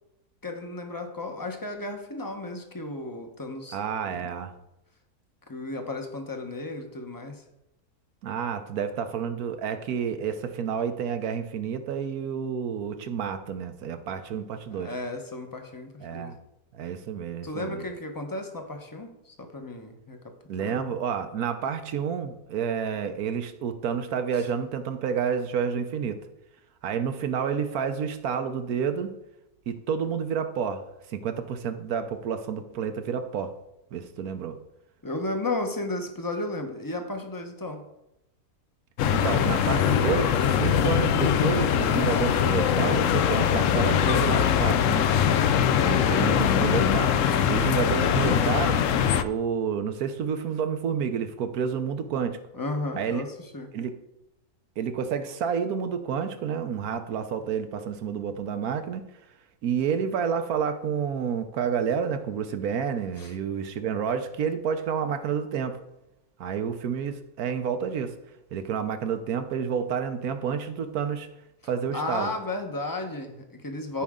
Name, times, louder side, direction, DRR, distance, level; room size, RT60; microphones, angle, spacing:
voice 1, 0.4-3.8 4.1-4.3 5.5-7.4 14.7-16.3 17.4-20.2 20.6-20.8 35.0-37.8 52.5-53.7 63.2-63.3 71.9-74.0, left 2 dB, 15° left, 4 dB, 0.8 m, -34 dB
voice 2, 3.7-4.5 8.2-14.9 16.0-16.4 16.7-17.8 20.5-26.2 26.8-29.1 29.7-30.8 31.1-33.5 33.9-34.6 39.1-45.0 45.8-47.1 47.5-48.8 49.2-52.4 52.9-53.2 53.7-54.0 54.8-59.0 59.6-65.8 66.4-68.2 68.5-71.3 71.7-72.3, right 7 dB, 70° right, 9 dB, 1.3 m, -29 dB
sound 1, 39.0-49.2, left 8 dB, 65° left, 0.8 m, -22 dB
14.5 x 5.2 x 3.7 m, 0.90 s
omnidirectional pair, 1.6 m